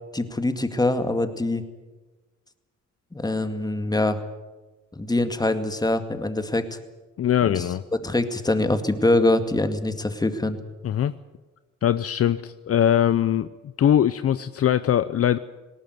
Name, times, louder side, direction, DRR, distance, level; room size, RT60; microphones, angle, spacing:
voice 1, 0.1-1.6 3.1-4.2 4.9-6.8 7.5-7.7 8.0-10.6, left 2 dB, 15° left, 9 dB, 2.1 m, -24 dB
voice 2, 7.2-7.8 10.8-11.1 11.8-13.5 13.8-15.4, left 10 dB, 50° left, 14 dB, 0.7 m, -21 dB
19.0 x 18.5 x 9.5 m, 1.2 s
cardioid pair, 90°, 30 cm